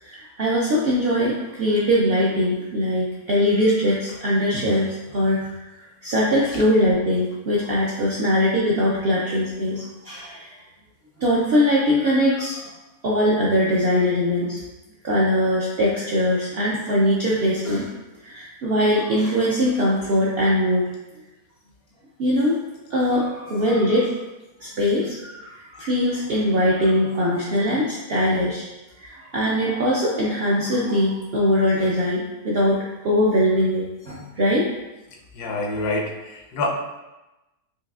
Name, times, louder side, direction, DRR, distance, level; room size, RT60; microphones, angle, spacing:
voice 1, 0.0-5.4 6.0-10.5 11.2-12.7 13.0-14.6 15.0-17.9 18.2-20.8 22.2-22.6 22.9-24.1 24.6-28.7 29.0-34.7, equal, 70° right, -6 dB, 0.5 m, -21 dB
voice 2, 35.4-36.7, left 2 dB, 85° left, 1 dB, 1.1 m, -26 dB
4.7 x 2.7 x 2.3 m, 1.0 s
omnidirectional pair, 1.6 m